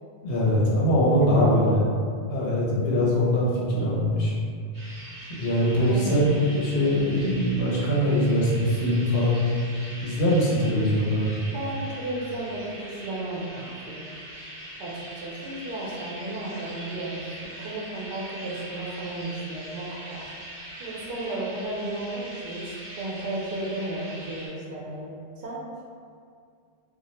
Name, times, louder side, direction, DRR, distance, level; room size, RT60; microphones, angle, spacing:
voice 1, 0.2-1.8 2.3-4.3 5.4-9.4 10.0-11.3, equal, 70° left, -6 dB, 0.8 m, -22 dB
voice 2, 1.2-1.8 5.8-6.3 11.5-14.1 14.8-20.3 20.8-25.6, right 2 dB, 60° right, -4 dB, 0.7 m, -34 dB
sound 1, 4.7-24.5, right 1 dB, 30° right, 0.4 m, -42 dB
2.2 x 2.0 x 2.8 m, 2.2 s
omnidirectional pair, 1.1 m